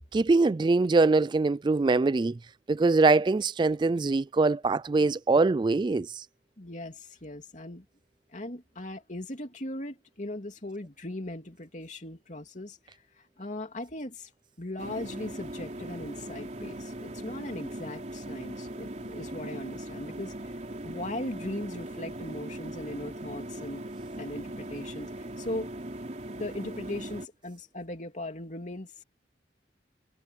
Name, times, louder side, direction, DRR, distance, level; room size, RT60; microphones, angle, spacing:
voice 1, 0.1-2.4 2.7-6.3, right 3 dB, 25° right, 0.3 m, -23 dB
voice 2, 6.6-7.8 8.3-12.8 13.2-14.3 14.6-20.5 20.8-23.8 24.2-25.7 26.4-29.0, left 1 dB, 45° left, 3.0 m, -38 dB
sound 1, 14.8-27.3, right 1 dB, 40° right, 3.7 m, -39 dB
head